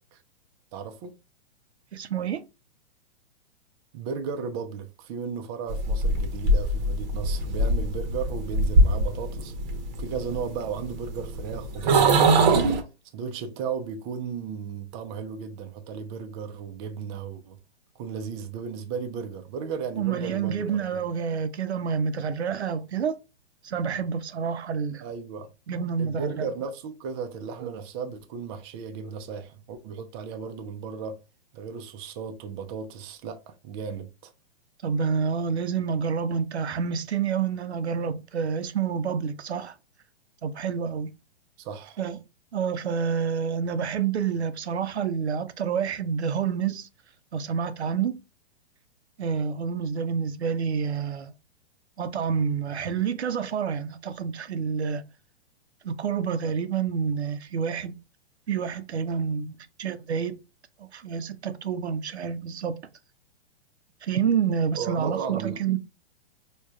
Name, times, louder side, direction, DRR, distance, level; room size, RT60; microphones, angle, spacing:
voice 1, 0.7-1.2 3.9-9.5 10.0-12.6 13.1-17.6 18.0-21.0 25.0-25.5 26.0-31.2 31.5-34.3 41.6-42.0 64.8-65.6, right 6 dB, 25° right, 0.4 m, -35 dB
voice 2, 1.9-2.5 20.0-23.2 23.6-25.0 25.7-26.5 34.8-39.7 40.4-41.1 42.0-42.2 42.5-46.9 47.3-48.2 49.2-51.3 52.0-55.0 55.8-58.0 58.5-60.4 60.8-62.8 64.0-65.8, right 6 dB, 90° right, 0.5 m, -28 dB
sound 1, 5.7-12.8, right 2 dB, 40° right, 0.7 m, -23 dB
4.8 x 2.2 x 2.3 m
hypercardioid pair, 115°, 32 cm